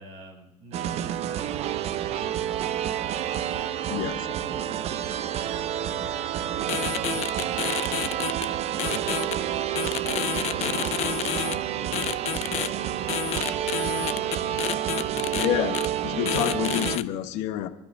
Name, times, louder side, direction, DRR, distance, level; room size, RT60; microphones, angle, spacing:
voice 1, 0.0-2.7 3.7-5.0 5.5-6.1 6.5-8.5 8.9-9.9 10.4-13.0 13.6-15.4, right 2 dB, 75° right, 1 dB, 6.6 m, -45 dB
sound 1, 0.7-17.0, right 11 dB, 60° right, 0.7 m, -29 dB
voice 2, 3.9-4.2 10.6-10.8 15.3-15.8 16.0-17.7, left 12 dB, 80° left, 7 dB, 1.3 m, -28 dB
sound 2, 6.7-8.5 8.8-9.3 9.7-11.5 11.9-12.7 13.1-15.5 15.7-15.9 16.2-17.0, left 13 dB, 65° left, 0.7 m, -29 dB
30.0 x 11.0 x 2.7 m, 0.97 s
supercardioid pair, 80°, 12 cm